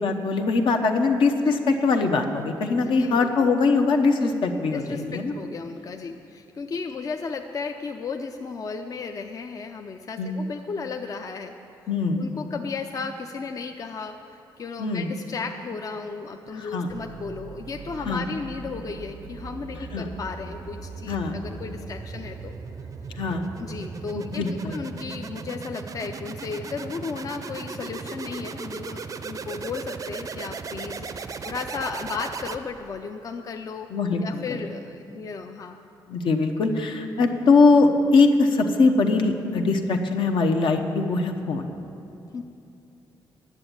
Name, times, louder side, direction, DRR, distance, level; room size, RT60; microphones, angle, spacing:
voice 1, 0.0-5.3 10.2-10.4 11.9-12.3 14.8-15.1 16.5-16.9 18.0-18.2 19.9-20.0 21.1-21.4 23.1-23.5 24.1-24.8 33.9-34.4 36.1-41.7, left 3 dB, 70° left, 3 dB, 0.9 m, -22 dB
voice 2, 2.8-3.5 4.7-11.5 12.2-22.5 23.6-33.9 34.2-35.8 42.3-42.4, left 4 dB, 40° left, 5 dB, 0.5 m, -35 dB
sound 1, 16.9-33.0, right 5 dB, 40° right, 0.5 m, -37 dB
9.8 x 7.1 x 9.1 m, 2.8 s
cardioid pair, 110°, 9 cm